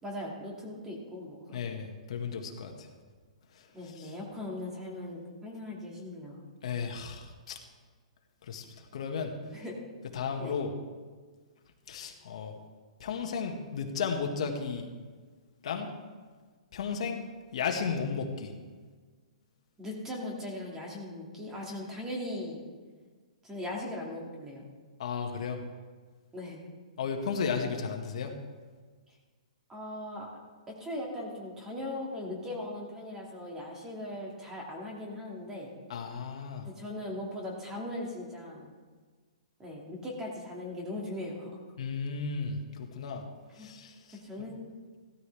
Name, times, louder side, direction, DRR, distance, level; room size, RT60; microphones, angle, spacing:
voice 1, 0.0-1.6 3.7-6.4 9.5-9.8 10.4-10.6 19.8-22.6 23.4-24.7 26.3-26.6 29.7-30.3 30.8-35.7 36.6-38.7 39.6-41.5 43.6-43.7 44.1-44.7, left 1 dB, 10° right, -2 dB, 2.4 m, -39 dB
voice 2, 1.5-2.9 3.5-3.6 4.0-4.1 6.6-7.6 8.5-9.3 10.1-10.7 11.9-12.5 13.0-14.9 15.6-15.9 16.7-17.2 17.5-18.5 25.0-25.6 27.0-28.4 35.9-36.7 41.8-43.2 43.6-44.5, left 5 dB, 60° left, 3 dB, 1.8 m, -34 dB
16.0 x 13.0 x 3.5 m, 1.5 s
hypercardioid pair, 155°, 4 cm